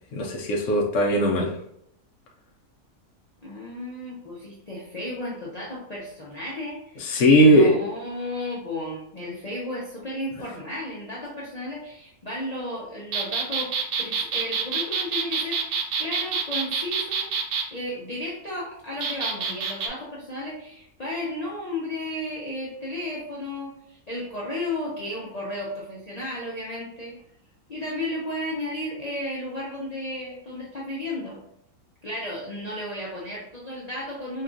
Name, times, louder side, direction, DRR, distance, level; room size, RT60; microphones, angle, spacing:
voice 1, 0.1-1.5 7.0-7.8, equal, 65° left, -1 dB, 0.9 m, -18 dB
voice 2, 3.4-17.3 17.7-27.2 27.7-31.4 32.0-34.4, left 1 dB, 45° left, -5 dB, 0.5 m, -33 dB
sound 1, 13.1-17.7 19.0-19.9, right 5 dB, 80° right, 1.1 m, -27 dB
5.4 x 2.3 x 2.5 m, 0.75 s
omnidirectional pair, 1.6 m